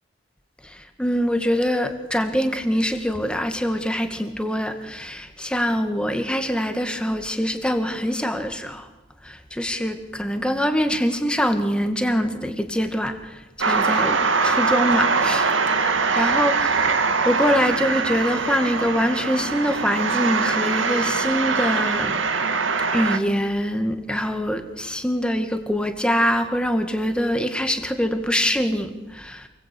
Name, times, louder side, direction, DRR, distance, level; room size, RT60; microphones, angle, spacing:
voice 1, 0.6-8.9 9.2-15.5 16.1-22.2 22.9-29.5, equal, 5° left, 6 dB, 2.1 m, -24 dB
sound 1, 13.6-23.2, right 4 dB, 85° right, 2.2 m, -22 dB
27.5 x 21.0 x 8.6 m, 1.1 s
head